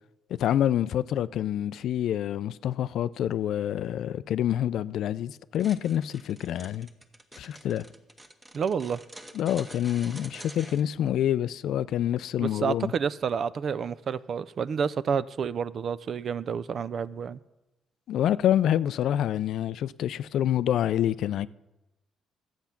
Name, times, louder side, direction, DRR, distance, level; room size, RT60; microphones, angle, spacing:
voice 1, 0.4-6.9 7.4-7.8 9.3-12.9 18.1-21.5, left 11 dB, 75° left, 0.4 m, -27 dB
sound 1, 5.5-10.8, right 1 dB, 20° right, 1.1 m, -47 dB
voice 2, 8.5-9.0 12.4-17.4, right 6 dB, 55° right, 0.4 m, -29 dB
12.0 x 8.1 x 5.8 m
cardioid pair, 90°, 0 cm